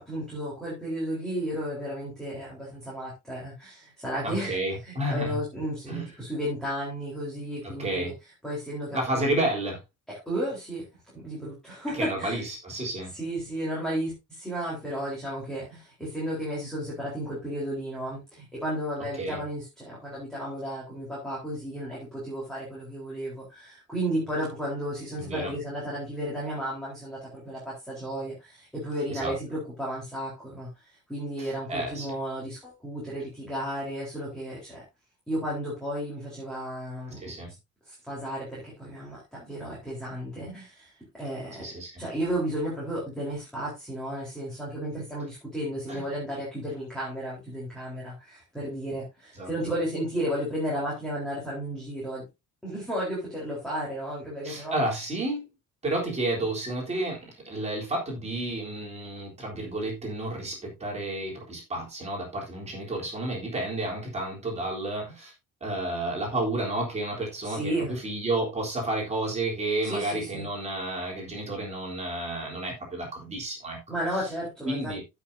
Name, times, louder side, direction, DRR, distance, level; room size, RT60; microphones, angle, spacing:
voice 1, 0.0-8.1 8.4-9.3 10.1-10.8 11.1-12.4 13.1-34.8 35.3-37.3 37.9-41.7 42.0-52.2 52.6-54.8 67.4-68.0 69.8-70.5 73.9-75.0, equal, ahead, 4.1 m, -33 dB
voice 2, 4.2-5.4 5.9-6.1 7.6-8.1 8.9-9.8 11.9-13.1 19.2-19.4 25.2-25.5 29.1-29.3 31.4-32.1 37.2-37.5 41.6-42.0 45.9-46.0 49.4-49.5 54.4-55.5 55.8-65.3 65.6-73.8 74.2-74.3 74.6-75.0, right 2 dB, 20° right, 3.7 m, -31 dB
15.5 x 6.1 x 2.7 m
cardioid pair, 180°, 32 cm